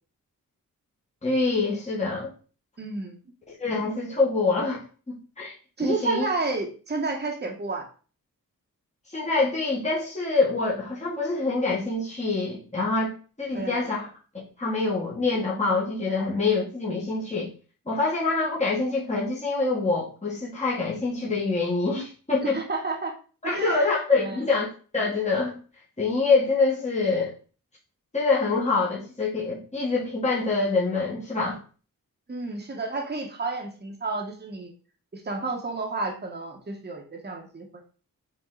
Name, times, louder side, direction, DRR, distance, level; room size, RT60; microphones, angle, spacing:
voice 1, 1.2-2.3 3.6-4.8 5.1-5.5 5.8-6.3 9.1-14.1 14.6-17.5 17.9-22.6 23.4-24.7 24.9-25.5 26.0-27.3 28.1-31.6, left 3 dB, 20° left, -6 dB, 1.7 m, -25 dB
voice 2, 2.8-3.1 5.8-7.8 13.5-14.0 22.4-23.1 23.4-23.9 24.2-24.4 32.3-34.7 35.1-37.7, right 3 dB, 30° right, 1 dB, 1.3 m, -31 dB
7.4 x 4.1 x 3.9 m, 0.38 s
wide cardioid pair, 165°, 34 cm